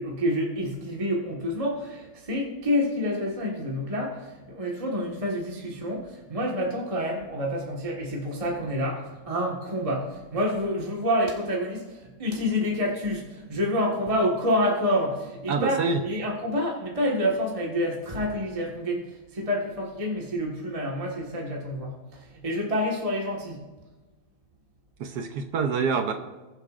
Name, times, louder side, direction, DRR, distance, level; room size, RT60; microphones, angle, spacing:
voice 1, 0.0-4.2 4.5-11.8 12.2-19.0 19.3-21.9 22.4-23.6, equal, 20° right, -1 dB, 1.5 m, -28 dB
voice 2, 15.5-16.0 25.0-26.1, right 5 dB, 65° right, 6 dB, 1.3 m, -26 dB
20.5 x 8.0 x 2.5 m, 1.2 s
omnidirectional pair, 2.0 m